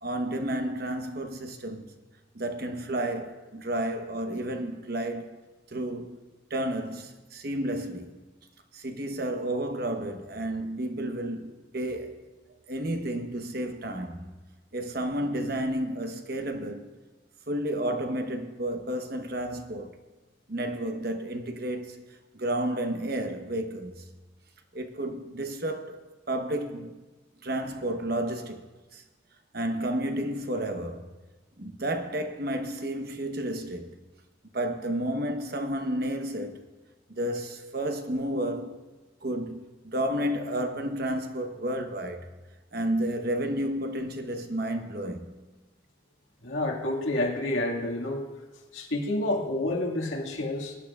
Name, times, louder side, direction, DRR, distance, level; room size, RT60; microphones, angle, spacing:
voice 1, 0.0-1.9 2.3-5.4 5.7-6.2 6.5-8.1 8.7-12.2 12.7-14.2 14.7-16.9 17.5-19.9 20.5-22.0 22.3-23.9 24.7-26.0 26.3-27.0 27.4-28.6 28.9-29.0 29.5-31.1 31.6-33.9 34.5-36.6 37.1-38.8 39.2-42.3 42.7-45.3, right 1 dB, 50° right, 1.0 m, -31 dB
voice 2, 46.4-48.3 48.7-50.8, left 1 dB, 85° left, 1.8 m, -29 dB
21.5 x 10.0 x 2.4 m
head